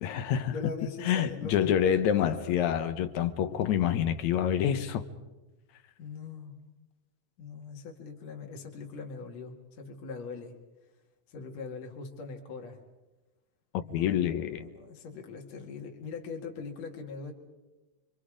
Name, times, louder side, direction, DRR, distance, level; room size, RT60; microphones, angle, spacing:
voice 1, 0.0-0.7 1.0-5.0 13.9-14.7, left 9 dB, 70° left, 11 dB, 2.0 m, -27 dB
voice 2, 0.5-1.7 2.1-2.7 6.0-6.6 7.4-10.5 11.3-12.8 13.9-14.2 14.5-17.3, left 4 dB, 55° left, 2 dB, 3.2 m, -41 dB
29.0 x 24.5 x 5.0 m, 1.2 s
omnidirectional pair, 3.9 m